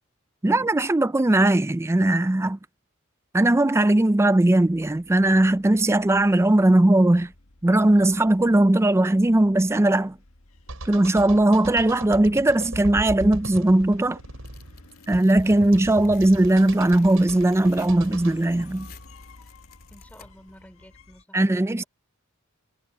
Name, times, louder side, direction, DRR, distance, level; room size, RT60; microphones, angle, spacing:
voice 1, 0.4-2.6 3.3-7.3 7.6-10.2 10.9-14.2 15.1-18.9 21.3-21.8, right 1 dB, 10° right, 0.4 m, -19 dB
sound 1, 4.7-21.2, left 2 dB, 75° left, 1.6 m, -50 dB
sound 2, 10.7-18.4, right 1 dB, 80° right, 5.3 m, -37 dB
Tearing, 14.5-20.6, left 9 dB, 45° left, 3.2 m, -53 dB
voice 2, 19.9-21.4, equal, 5° left, 3.5 m, -50 dB
head